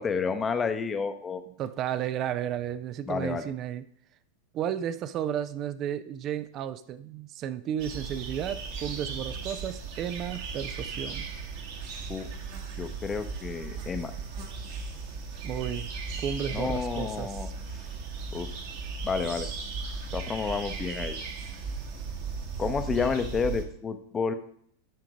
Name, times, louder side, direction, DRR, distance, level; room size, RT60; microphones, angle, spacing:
voice 1, 0.0-1.4 3.1-3.5 12.1-12.3 12.8-14.1 16.5-17.5 18.3-18.5 19.0-19.5 20.1-21.2 22.6-24.3, left 5 dB, 20° left, 0.8 m, -30 dB
voice 2, 1.6-3.8 4.5-11.3 15.4-15.9 16.2-17.4, right 10 dB, 35° right, 0.4 m, -33 dB
sound 1, 7.8-23.6, right 4 dB, 50° right, 1.5 m, -37 dB
11.0 x 3.8 x 5.1 m
figure-of-eight pair, 90°, 0 cm